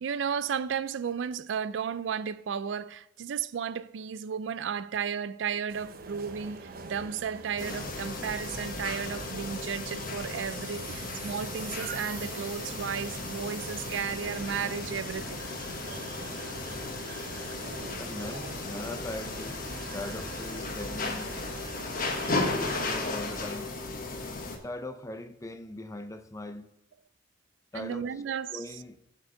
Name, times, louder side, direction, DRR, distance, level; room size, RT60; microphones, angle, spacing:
voice 1, 0.0-15.4 21.8-21.9 27.7-28.6, right 7 dB, 75° right, 0.4 m, -34 dB
sound 1, 5.7-22.9, right 4 dB, 50° right, 0.8 m, -45 dB
sound 2, 7.6-24.6, left 3 dB, 50° left, 1.3 m, -35 dB
voice 2, 18.0-19.6 19.9-21.3 22.5-23.7 24.6-26.7 27.7-28.1 28.5-29.0, left 1 dB, 15° left, 0.6 m, -40 dB
7.8 x 5.3 x 6.6 m
head